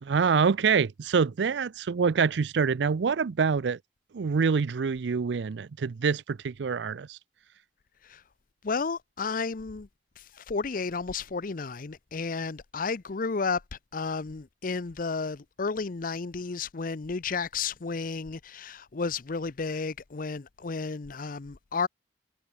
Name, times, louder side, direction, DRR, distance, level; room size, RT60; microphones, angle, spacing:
voice 1, 0.0-3.8 4.1-7.2, right 5 dB, 85° right, 0.5 m, -26 dB
voice 2, 8.6-9.9 10.2-13.6 13.9-21.9, left 4 dB, 50° left, 0.7 m, -32 dB
head